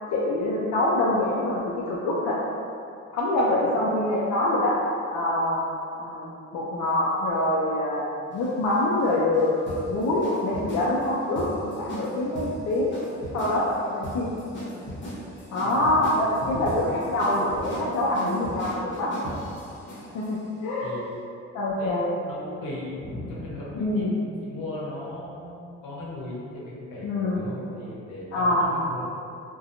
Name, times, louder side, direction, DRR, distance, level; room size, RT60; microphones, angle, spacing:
voice 1, 0.0-1.6 1.9-2.4 3.1-4.8 5.1-5.6 6.0-12.9 13.3-14.3 15.5-19.3 20.1-20.9 21.5-22.1 23.7-24.2 27.0-27.5 28.3-28.8, left 1 dB, 65° left, -5 dB, 0.5 m, -25 dB
sound 1, 8.3-20.3, equal, 40° left, 0.8 m, -38 dB
voice 2, 15.6-16.0 16.4-16.8 20.8-21.3 21.7-29.1, left 1 dB, 85° left, -6 dB, 0.8 m, -37 dB
2.7 x 2.2 x 2.5 m, 2.5 s
cardioid pair, 90°, 30 cm